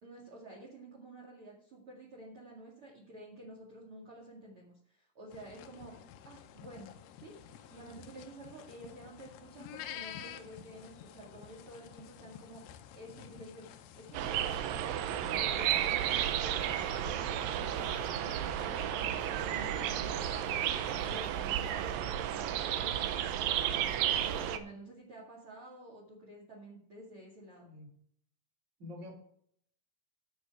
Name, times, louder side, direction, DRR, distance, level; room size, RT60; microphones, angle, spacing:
voice 1, 0.0-5.9 6.2-6.9 7.2-7.3 7.7-12.6 12.9-13.7 14.0-14.8 15.2-19.1 19.4-23.7 24.2-27.7, right 1 dB, 40° right, -1 dB, 2.4 m, -50 dB
sound 1, 5.3-21.2, left 10 dB, 80° left, 2.8 m, -51 dB
sound 2, 14.1-24.6, right 10 dB, 80° right, 2.1 m, -32 dB
voice 2, 28.8-29.1, left 2 dB, 25° right, -1 dB, 2.5 m, -46 dB
14.5 x 6.1 x 4.8 m, 0.67 s
omnidirectional pair, 4.8 m